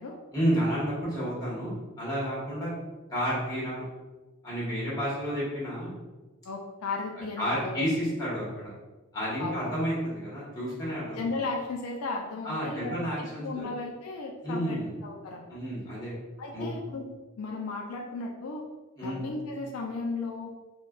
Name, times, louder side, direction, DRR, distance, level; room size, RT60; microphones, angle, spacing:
voice 1, 0.3-2.7 3.1-3.8 4.4-5.9 7.4-8.7 9.1-11.2 12.4-13.7 14.4-14.9 15.5-16.1 16.5-16.7 19.0-19.2, equal, 20° left, -7 dB, 1.2 m, -31 dB
voice 2, 6.4-7.9 9.4-9.6 10.8-15.6 16.4-17.0 17.4-18.6 19.0-20.5, left 3 dB, 75° left, 1 dB, 0.4 m, -35 dB
4.2 x 2.2 x 2.3 m, 1.2 s
head